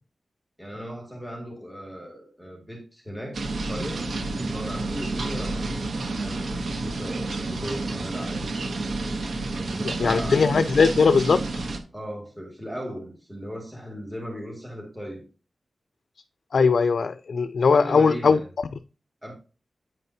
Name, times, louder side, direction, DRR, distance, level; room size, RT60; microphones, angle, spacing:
voice 1, 0.6-4.1 4.4-6.4 6.7-8.5 9.5-10.6 11.9-15.2 17.7-18.5 19.2-19.3, equal, ahead, 2.1 m, -37 dB
sound 1, 3.3-11.8, right 2 dB, 80° right, 1.1 m, -30 dB
voice 2, 9.8-11.6 16.5-18.4, left 5 dB, 75° left, 0.4 m, -20 dB
9.2 x 5.4 x 2.8 m
wide cardioid pair, 125°, 0 cm